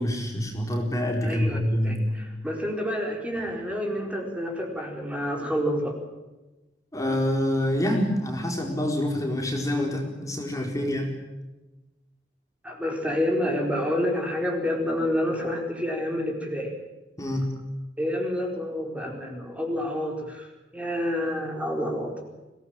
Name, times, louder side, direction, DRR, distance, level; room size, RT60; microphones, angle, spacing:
voice 1, 0.0-2.1 6.9-11.1 17.2-17.6, left 1 dB, 20° left, 1 dB, 4.3 m, -26 dB
voice 2, 1.2-1.6 1.8-6.0 12.6-16.7 18.0-22.2, equal, 5° right, 1 dB, 4.5 m, -28 dB
25.5 x 18.0 x 9.1 m, 1.1 s
head